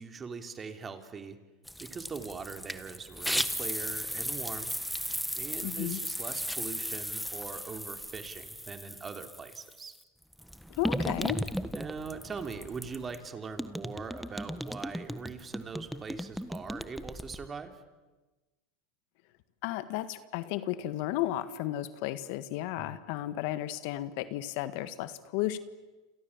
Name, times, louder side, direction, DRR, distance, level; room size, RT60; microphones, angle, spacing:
voice 1, 0.0-1.4 1.8-4.7 5.3-10.0 11.7-17.8 22.8-23.0, right 5 dB, 25° right, 7 dB, 3.2 m, -41 dB
sound 1, 1.7-9.8 10.3-13.3 13.6-17.5, equal, ahead, 1.4 m, -36 dB
voice 2, 5.6-6.0 10.8-11.4 19.6-25.6, left 14 dB, 65° left, 13 dB, 1.7 m, -33 dB
28.5 x 28.0 x 7.4 m, 1.2 s
hypercardioid pair, 100°, 0 cm